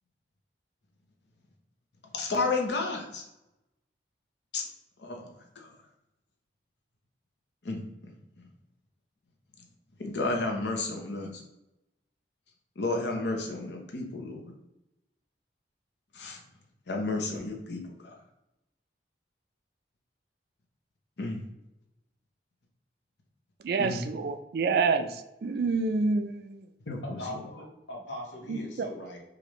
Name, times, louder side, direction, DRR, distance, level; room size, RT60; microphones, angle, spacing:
voice 1, 2.1-3.2 4.5-4.7 5.0-5.7 7.6-8.2 10.0-11.4 12.8-14.4 16.1-16.4 16.9-18.1 21.2-21.4 23.8-24.0 26.9-27.4, left 3 dB, 70° left, 2 dB, 0.8 m, -32 dB
voice 2, 23.6-25.2 25.4-26.6 28.5-28.9, right 4 dB, 60° right, 10 dB, 0.3 m, -28 dB
voice 3, 27.0-29.2, left 1 dB, 85° left, -2 dB, 1.2 m, -40 dB
4.9 x 2.5 x 3.0 m, 0.93 s
head